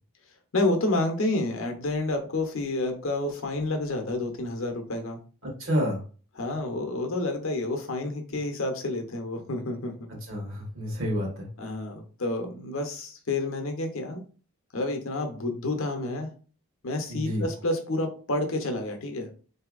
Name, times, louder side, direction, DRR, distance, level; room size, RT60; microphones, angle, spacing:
voice 1, 0.5-5.2 6.3-9.9 11.6-14.2 14.7-16.3 16.8-19.3, left 2 dB, 65° left, 4 dB, 0.8 m, -29 dB
voice 2, 5.4-6.0 10.3-11.5 17.1-17.5, equal, 60° right, 0 dB, 1.1 m, -29 dB
3.9 x 2.7 x 2.4 m, 0.38 s
head